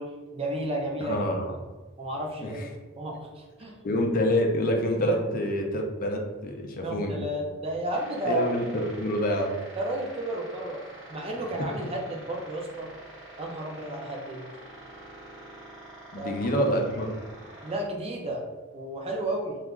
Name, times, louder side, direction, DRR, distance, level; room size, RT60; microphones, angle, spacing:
voice 1, 0.0-1.4 2.0-3.8 5.0-5.2 6.8-8.4 9.8-10.8 11.1-12.9 13.4-14.4 16.2-16.3 17.6-18.5 18.7-19.6, right 1 dB, 30° right, 0 dB, 0.5 m, -32 dB
voice 2, 1.0-1.5 2.4-2.5 3.8-7.2 8.3-9.5 16.1-17.1, equal, 45° left, 2 dB, 0.5 m, -27 dB
sound 1, 7.9-17.8, right 1 dB, 60° right, 1.0 m, -47 dB
2.9 x 2.4 x 3.5 m, 1.2 s
head